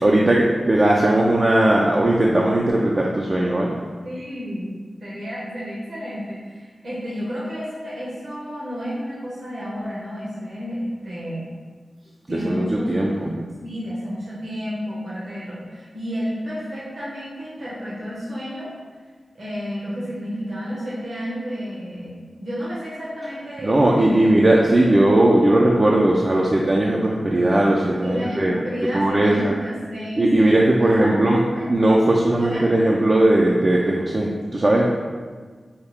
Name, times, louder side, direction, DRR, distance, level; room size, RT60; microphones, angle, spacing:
voice 1, 0.0-3.7 12.3-13.3 23.6-28.5 28.9-29.5 30.2-31.4 31.7-35.0, right 1 dB, 40° right, -3 dB, 0.4 m, -18 dB
voice 2, 4.0-4.7 5.0-11.5 12.3-12.9 13.5-18.7 19.3-24.4 28.0-30.3 30.8-31.8 32.4-32.7, equal, 75° right, -7 dB, 1.2 m, -31 dB
5.6 x 2.4 x 3.5 m, 1.5 s
wide cardioid pair, 65°, 0 cm